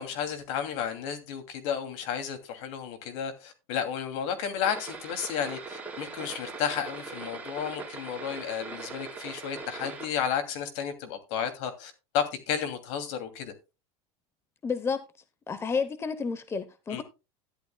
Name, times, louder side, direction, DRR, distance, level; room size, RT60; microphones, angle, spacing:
voice 1, 0.0-13.5 16.9-17.0, left 8 dB, 65° left, 2.7 m, -32 dB
sound 1, 4.6-10.1, right 4 dB, 10° right, 4.2 m, -40 dB
voice 2, 14.6-15.0 15.5-17.0, left 5 dB, 15° left, 0.9 m, -30 dB
13.0 x 11.5 x 2.3 m
supercardioid pair, 140°, 16 cm